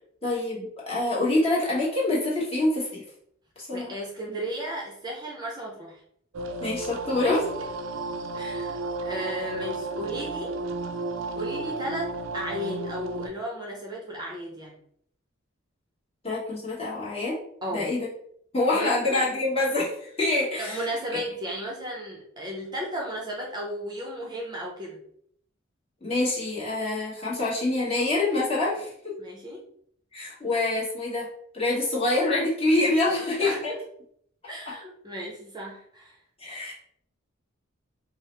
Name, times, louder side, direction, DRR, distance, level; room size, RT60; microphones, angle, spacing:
voice 1, 0.2-3.0 3.6-3.9 6.6-7.4 16.2-17.4 17.7-18.1 18.5-20.8 26.0-28.9 30.1-31.3 31.5-33.7 34.7-34.8 36.4-36.7, left 2 dB, 30° left, -5 dB, 1.2 m, -26 dB
voice 2, 3.7-6.0 7.2-7.4 8.3-10.5 11.4-14.8 17.6-17.9 18.7-19.3 20.6-25.0 29.2-29.6 33.1-33.8 34.5-36.2, equal, 20° right, -2 dB, 0.6 m, -34 dB
sound 1, 6.3-13.3, right 3 dB, 70° right, 0.4 m, -33 dB
4.5 x 2.0 x 3.2 m, 0.66 s
head